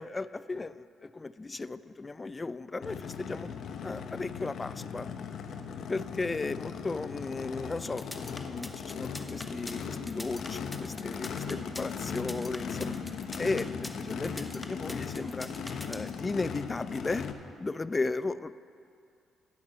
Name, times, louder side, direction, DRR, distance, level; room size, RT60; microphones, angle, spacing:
voice 1, 0.0-3.5 3.8-5.1 5.9-12.9 13.4-15.5 15.9-17.3 17.6-18.6, left 3 dB, 25° left, 16 dB, 0.3 m, -35 dB
Race car auto racing / Idling / Accelerating revving vroom, 2.8-17.3, left 6 dB, 65° left, 0.7 m, -38 dB
sound 1, 7.9-16.2, left 1 dB, 10° left, 0.8 m, -43 dB
10.5 x 7.1 x 7.4 m, 2.5 s
cardioid pair, 90°, 0 cm